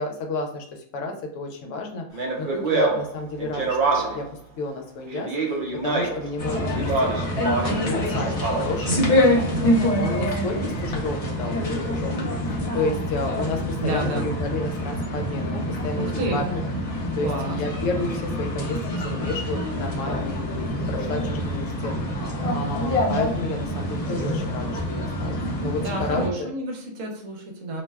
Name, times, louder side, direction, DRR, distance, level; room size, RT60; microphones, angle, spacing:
voice 1, 0.0-4.3 4.6-7.5 7.8-26.5, left 2 dB, 70° left, 3 dB, 0.9 m, -31 dB
Speech, 2.1-4.3 5.1-6.3 6.7-7.9 8.2-8.9, right 3 dB, 55° right, 0.6 m, -25 dB
sound 1, 6.4-26.3, left 1 dB, 40° left, 0.6 m, -26 dB
voice 2, 13.8-14.3 16.0-16.3 17.2-17.6 25.8-27.8, right 2 dB, 75° right, 1 dB, 1.1 m, -29 dB
2.5 x 2.1 x 3.3 m, 0.63 s
omnidirectional pair, 1.4 m